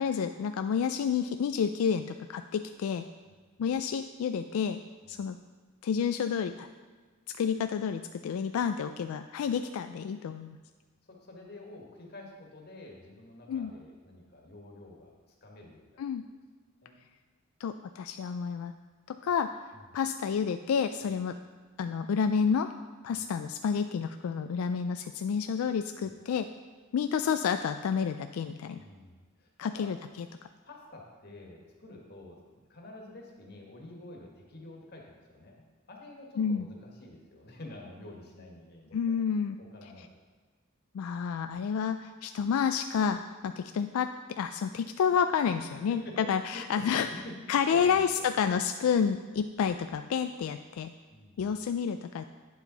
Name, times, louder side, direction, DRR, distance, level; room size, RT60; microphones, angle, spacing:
voice 1, 0.0-3.0 3.6-4.8 5.1-5.4 5.8-6.7 7.4-10.6 13.5-13.7 16.0-16.2 17.6-18.7 19.1-19.5 19.9-21.3 21.8-22.7 23.0-26.5 26.9-28.8 29.6-30.0 36.4-36.7 38.9-39.6 40.9-47.1 47.5-50.9 51.4-52.2, left 7 dB, 85° left, 8 dB, 0.3 m, -29 dB
voice 2, 3.2-3.7 5.0-5.2 11.1-15.1 15.4-16.1 16.8-17.0 19.7-19.8 23.1-23.2 26.0-26.1 28.8-29.8 30.6-39.2 39.6-40.2 45.4-48.3 51.1-51.6, left 2 dB, 50° left, 0 dB, 1.6 m, -49 dB
9.1 x 7.2 x 4.0 m, 1.4 s
head